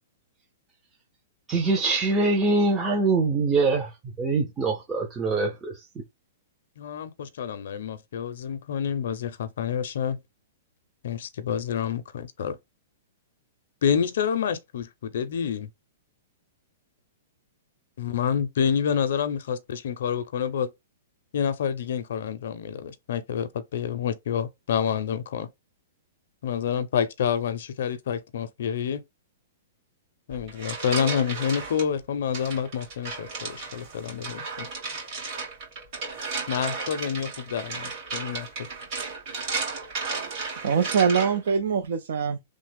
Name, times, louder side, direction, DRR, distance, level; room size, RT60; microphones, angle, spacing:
voice 1, 1.5-5.8, right 3 dB, 15° right, 0.6 m, -24 dB
voice 2, 6.8-10.2 11.0-12.6 13.8-15.7 18.0-20.7 21.3-25.5 26.4-29.0 30.3-34.7 36.5-38.7, left 8 dB, 70° left, 0.5 m, -28 dB
sound 1, 30.3-31.8 32.3-41.5, right 4 dB, 40° right, 2.1 m, -34 dB
voice 3, 40.6-42.4, right 6 dB, 70° right, 0.4 m, -23 dB
3.2 x 2.0 x 3.3 m
hypercardioid pair, 155°, 0 cm